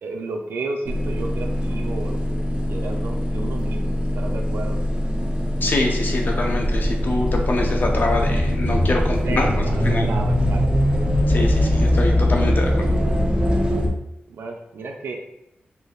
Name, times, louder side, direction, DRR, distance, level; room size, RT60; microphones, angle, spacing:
voice 1, 0.0-2.4 2.7-4.8 9.2-10.9 14.3-15.1, right 3 dB, 80° right, 2 dB, 0.4 m, -33 dB
sound 1, 0.9-13.9, left 1 dB, 25° right, 0.5 m, -21 dB
voice 2, 5.6-9.5 9.8-10.1 11.3-12.9, left 2 dB, 55° left, 1 dB, 0.6 m, -25 dB
3.2 x 2.7 x 2.3 m, 0.85 s
cardioid pair, 70°, 4 cm